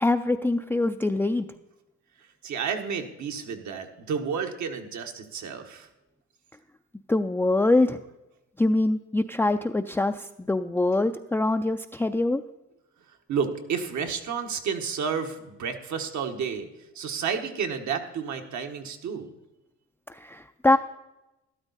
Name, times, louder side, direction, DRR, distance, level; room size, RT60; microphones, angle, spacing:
voice 1, 0.0-1.5 7.1-8.0 8.6-12.4 20.1-20.8, left 2 dB, 5° left, 5 dB, 0.4 m, -24 dB
voice 2, 2.4-5.9 13.3-16.7 16.9-19.3, right 6 dB, 70° right, 5 dB, 1.4 m, -31 dB
12.5 x 12.0 x 4.1 m, 0.96 s
cardioid pair, 90°, 30 cm